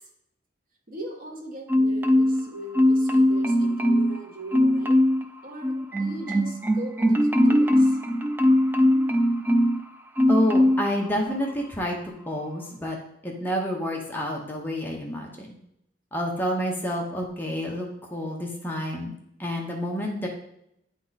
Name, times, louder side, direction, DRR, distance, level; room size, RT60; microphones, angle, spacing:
voice 1, 0.9-5.0 5.4-7.2 7.4-8.0, right 2 dB, 50° right, 1 dB, 1.3 m, -39 dB
Marimba xylophone, 1.7-2.5 2.7-4.2 4.5-5.2 5.6-9.8 10.2-10.9 11.3-11.5, left 1 dB, 10° right, 0.3 m, -21 dB
voice 2, 10.3-13.0 13.2-15.5 16.1-19.1 19.4-20.3, equal, 10° left, -1 dB, 0.9 m, -28 dB
9.9 x 3.6 x 4.1 m, 0.77 s
head